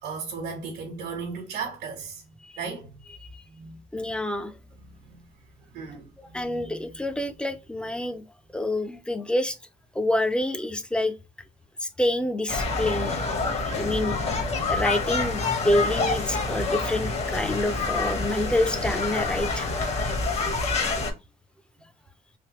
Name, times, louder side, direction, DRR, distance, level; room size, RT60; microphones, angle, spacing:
voice 1, 0.0-2.2 2.6-3.0 3.5-4.1 4.7-5.2 5.7-6.8 20.2-20.3, right 5 dB, 70° right, 1.2 m, -37 dB
voice 2, 3.9-4.5 6.2-8.2 8.5-9.6 9.9-11.1 11.8-13.2 13.8-14.2 14.7-19.7, left 1 dB, 5° left, 0.4 m, -27 dB
sound 1, 12.5-21.1, left 3 dB, 40° left, 0.8 m, -27 dB
3.4 x 2.8 x 2.9 m
cardioid pair, 110°, 17 cm